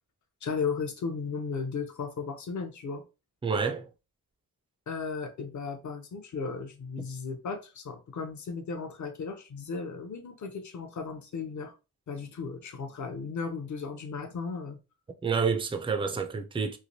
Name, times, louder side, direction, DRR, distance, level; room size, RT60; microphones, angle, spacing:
voice 1, 0.4-3.0 4.9-11.7 12.1-14.8, left 5 dB, 50° left, 0.6 m, -35 dB
voice 2, 3.4-3.9 15.2-16.8, right 5 dB, 15° right, 0.3 m, -28 dB
3.3 x 2.8 x 2.7 m
wide cardioid pair, 150°, 39 cm